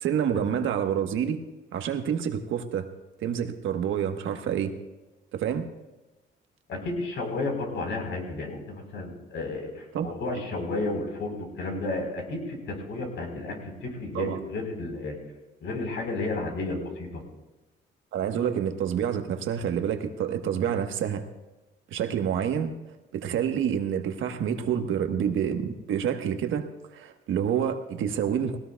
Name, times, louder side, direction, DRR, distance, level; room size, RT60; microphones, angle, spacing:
voice 1, 0.0-1.4 1.7-2.9 3.2-4.7 5.3-5.6 9.9-10.1 14.1-14.4 18.1-21.2 21.9-22.7 23.1-26.7 26.9-28.6, right 8 dB, 80° right, 6 dB, 1.3 m, -28 dB
voice 2, 6.7-15.2 15.6-17.2, left 2 dB, 75° left, 2 dB, 4.2 m, -32 dB
20.0 x 18.0 x 2.3 m, 1.1 s
cardioid pair, 90°, 20 cm